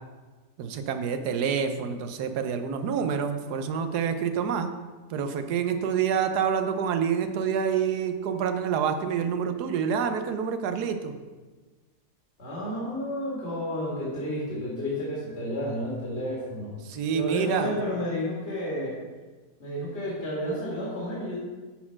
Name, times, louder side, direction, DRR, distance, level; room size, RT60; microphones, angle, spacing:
voice 1, 0.6-4.7 5.1-11.1 16.8-17.7, right 7 dB, 80° right, 8 dB, 1.3 m, -27 dB
voice 2, 12.4-16.7 17.1-19.0 19.6-21.4, equal, 40° left, -6 dB, 2.3 m, -31 dB
9.8 x 4.4 x 5.7 m, 1.3 s
omnidirectional pair, 1.7 m